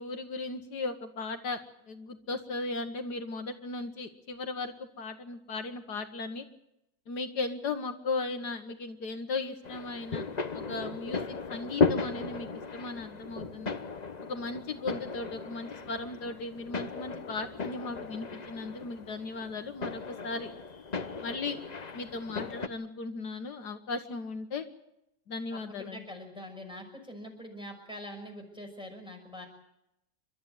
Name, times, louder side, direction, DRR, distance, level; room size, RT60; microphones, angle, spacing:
voice 1, 0.0-1.6 1.9-6.5 7.1-10.3 10.5-13.8 14.3-20.5 21.2-21.6 21.9-24.7 25.3-26.0, left 3 dB, 70° left, 6 dB, 1.9 m, -37 dB
sound 1, 9.6-22.7, left 4 dB, 30° left, 0.9 m, -35 dB
voice 2, 25.5-29.5, left 1 dB, 5° right, 1 dB, 5.9 m, -44 dB
29.5 x 13.0 x 9.2 m, 0.84 s
omnidirectional pair, 1.8 m